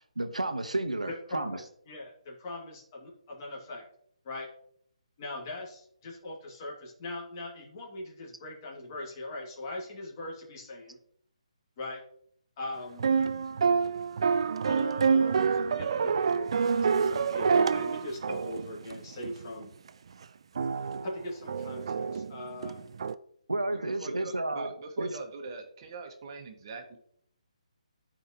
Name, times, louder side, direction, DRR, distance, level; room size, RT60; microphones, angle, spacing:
voice 1, 0.0-1.6 23.5-24.7 25.0-25.1, right 2 dB, 85° right, 8 dB, 1.0 m, -31 dB
voice 2, 1.1-3.8 4.2-4.5 5.2-11.0 11.8-12.0 12.6-13.2 14.6-19.7 21.0-22.9, left 1 dB, 35° left, -1 dB, 2.2 m, -40 dB
sound 1, 13.0-19.4 19.9-20.0 20.6-23.1, right 5 dB, 55° right, 0.4 m, -27 dB
voice 3, 23.7-27.0, right 3 dB, 35° right, 3 dB, 1.5 m, -42 dB
12.5 x 5.0 x 3.0 m, 0.66 s
figure-of-eight pair, 140°, 4 cm